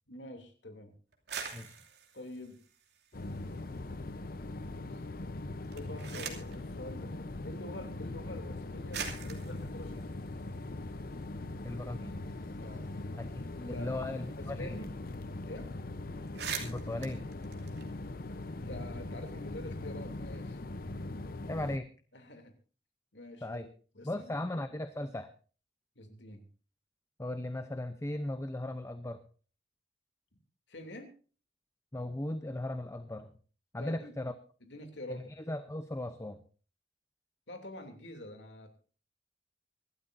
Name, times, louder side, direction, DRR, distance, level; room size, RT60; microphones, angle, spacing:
voice 1, 0.1-0.9 2.1-2.6 5.7-10.0 12.5-12.9 13.5-14.0 14.4-14.9 15.5-15.7 18.5-20.6 22.1-22.5 23.1-23.7 23.9-24.4 26.0-26.4 30.7-31.1 33.8-34.1 34.6-35.3 37.5-38.8, left 1 dB, 75° left, 5 dB, 2.9 m, -46 dB
sound 1, 1.1-3.7 4.1-4.7 5.5-6.6 7.7-7.8 8.5-8.6 8.9-11.2 11.6-11.7 11.9-14.6 14.8-14.9 15.2-15.5 15.8-15.9 16.2-18.4, right 7 dB, 65° right, 2.8 m, -44 dB
sound 2, 3.1-21.8, left 2 dB, 55° left, 0.8 m, -41 dB
voice 2, 11.6-12.2 13.2-14.8 16.6-17.2 21.5-21.9 23.4-23.7 24.0-25.3 27.2-29.2 31.9-33.3 33.7-34.3 35.1-36.4, left 1 dB, 15° left, 10 dB, 0.7 m, -37 dB
24.5 x 12.5 x 2.7 m, 0.38 s
head